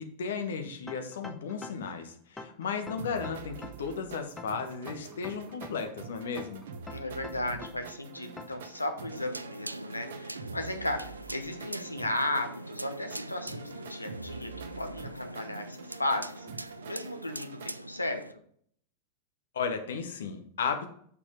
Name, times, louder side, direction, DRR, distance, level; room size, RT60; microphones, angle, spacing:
voice 1, 0.0-6.6 19.5-20.9, left 5 dB, 65° left, 6 dB, 1.3 m, -35 dB
sound 1, 0.9-1.9 2.4-3.9 4.4-5.9 6.4-7.9 8.4-8.7, left 3 dB, 10° left, 1.0 m, -44 dB
sound 2, 3.0-17.7, right 5 dB, 60° right, 1.0 m, -46 dB
voice 2, 6.9-18.2, left 1 dB, 85° left, 6 dB, 1.0 m, -35 dB
sound 3, 9.1-18.3, right 1 dB, 85° right, 0.3 m, -42 dB
6.8 x 5.7 x 5.1 m, 0.62 s
figure-of-eight pair, 90°, 0 cm